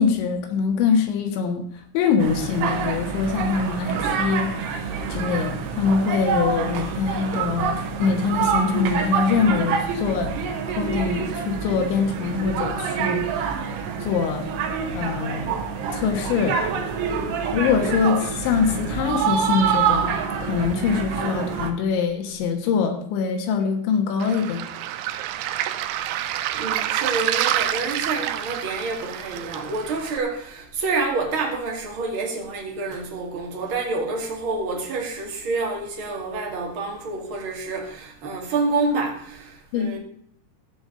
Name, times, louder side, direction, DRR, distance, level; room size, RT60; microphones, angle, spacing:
voice 1, 0.0-1.6 1.9-10.3 10.7-13.5 14.0-14.5 14.9-15.6 15.9-16.6 17.5-24.6 39.7-39.9, left 5 dB, 75° left, 3.5 m, -24 dB
sound 1, 2.2-21.7, right 6 dB, 70° right, 3.2 m, -26 dB
Waves surf, 24.2-30.2, right 12 dB, 85° right, 2.4 m, -28 dB
voice 2, 26.5-40.0, right 3 dB, 45° right, 1.8 m, -28 dB
14.0 x 5.1 x 7.7 m
omnidirectional pair, 5.4 m